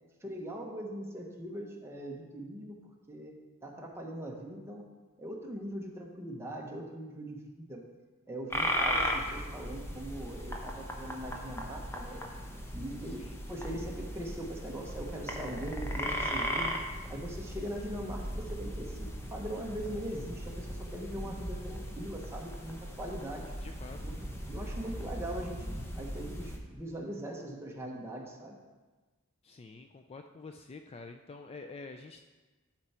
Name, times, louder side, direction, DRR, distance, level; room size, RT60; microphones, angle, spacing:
voice 1, 0.2-2.8 3.1-4.8 5.2-7.8 8.3-12.2 12.7-13.2 13.5-16.8 17.1-23.5 24.0-24.2 24.5-25.6 26.0-28.6, right 1 dB, 10° right, -1 dB, 1.0 m, -41 dB
Pic-de-bure-lagopedes, 8.5-26.6, equal, 10° left, 0.8 m, -37 dB
voice 2, 13.1-13.4 23.6-24.0 24.8-25.0 29.4-32.2, left 3 dB, 25° left, 6 dB, 0.3 m, -47 dB
11.5 x 4.5 x 4.3 m, 1.3 s
head